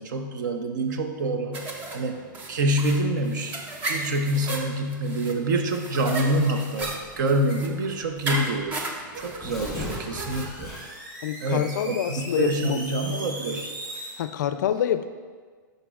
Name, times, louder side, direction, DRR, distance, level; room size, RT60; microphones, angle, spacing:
voice 1, 0.0-2.2 2.5-3.6 3.9-10.7 11.4-13.7, right 1 dB, 60° right, 6 dB, 0.7 m, -26 dB
sound 1, 1.5-10.5, right 2 dB, 15° right, 0.4 m, -35 dB
Tearing, 6.8-7.2 8.0-8.1 8.4-8.5 9.2-11.1, left 1 dB, ahead, 1.5 m, -36 dB
sound 2, 9.3-14.2, right 1 dB, 85° right, 1.8 m, -39 dB
voice 2, 11.2-12.8 14.2-15.1, left 10 dB, 60° left, 11 dB, 0.4 m, -26 dB
9.8 x 5.3 x 2.4 m, 1.5 s
supercardioid pair, 170°, 11 cm